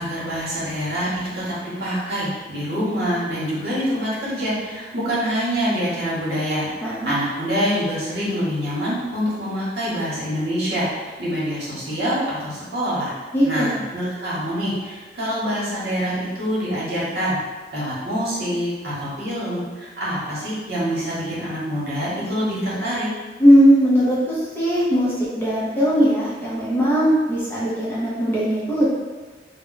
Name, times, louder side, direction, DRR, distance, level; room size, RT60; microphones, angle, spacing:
voice 1, 0.0-13.1 13.4-17.4 17.7-23.1, equal, 60° right, -8 dB, 0.9 m, -25 dB
voice 2, 6.8-7.1 13.3-13.8 23.4-28.9, equal, 15° left, -8 dB, 0.5 m, -18 dB
2.2 x 2.0 x 3.8 m, 1.3 s
head